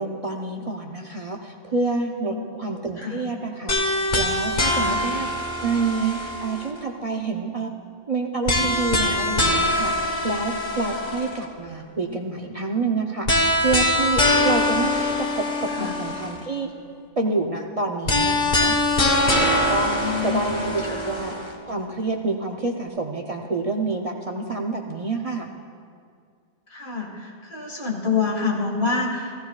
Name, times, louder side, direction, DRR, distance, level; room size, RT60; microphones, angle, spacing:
voice 1, 0.0-7.7 8.1-16.7 17.2-18.7 19.5-21.3 21.6-25.5, right 3 dB, 40° right, 1 dB, 0.6 m, -28 dB
sound 1, 3.7-6.8 8.5-11.4 13.3-16.4 18.1-21.5, left 1 dB, 45° left, 1.4 m, -23 dB
voice 2, 19.9-20.4 20.8-21.0 26.7-29.3, left 5 dB, 65° left, -1 dB, 2.3 m, -27 dB
15.5 x 15.0 x 2.3 m, 2.2 s
omnidirectional pair, 1.1 m